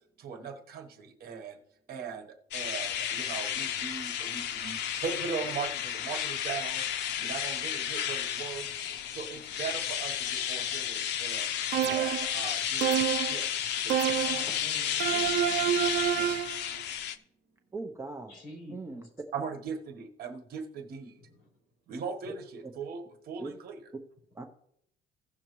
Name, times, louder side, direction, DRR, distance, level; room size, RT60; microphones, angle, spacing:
voice 1, 0.2-1.6 1.9-2.3 2.5-6.8 7.2-8.7 9.1-11.5 11.8-13.5 13.8-14.3 19.3-21.2 21.9-23.8, right 6 dB, 60° right, 4 dB, 1.2 m, -39 dB
sound 1, 2.5-17.2, left 10 dB, 80° left, 0.6 m, -32 dB
sound 2, 11.7-12.4 12.8-13.4 13.9-14.5 15.0-16.6, right 11 dB, 85° right, 0.5 m, -28 dB
voice 2, 14.2-15.1 18.3-19.1 21.1-21.5, left 2 dB, 55° left, -1 dB, 4.5 m, -49 dB
voice 3, 17.7-18.4 18.7-19.0 23.4-23.5 24.4-24.5, right 3 dB, 15° right, 3 dB, 0.6 m, -40 dB
16.0 x 6.4 x 3.0 m, 0.71 s
cardioid pair, 165°, 18 cm